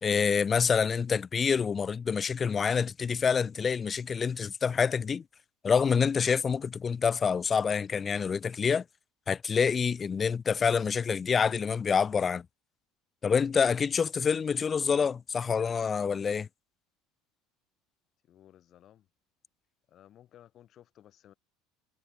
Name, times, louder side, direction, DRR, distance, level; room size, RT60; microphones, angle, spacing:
voice 1, 0.0-5.2 5.6-8.8 9.3-12.5 13.2-16.5, left 6 dB, 25° left, 0.5 m, -27 dB
voice 2, 18.2-19.1 19.9-21.3, left 11 dB, 40° left, 2.4 m, -57 dB
figure-of-eight pair, 65°, 0 cm